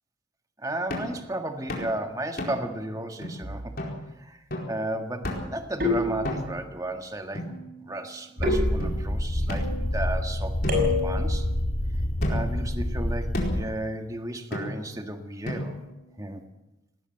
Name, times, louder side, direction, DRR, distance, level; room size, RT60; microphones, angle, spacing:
voice 1, 0.6-3.7 4.2-4.4 4.7-7.5 7.8-11.5 12.3-15.8 16.2-16.4, right 1 dB, 20° right, 5 dB, 1.7 m, -34 dB
sound 1, 0.9-1.2 1.7-1.9 2.4-2.7 3.2-3.3 3.8-4.0 4.5-4.8 5.2-5.6 6.2-6.7 7.3-8.1 8.8-8.9 9.5-10.2 10.6-11.7 12.2-12.6 13.3-13.7 14.5-15.0 15.4-16.0, equal, 50° left, 4.6 m, -33 dB
sound 2, 3.4-3.9 5.8-6.7 8.4-9.4 10.7-11.4, left 2 dB, 50° right, 5.7 m, -28 dB
sound 3, 8.4-13.6, left 1 dB, 30° left, 1.2 m, -28 dB
19.0 x 18.0 x 7.8 m, 0.91 s
head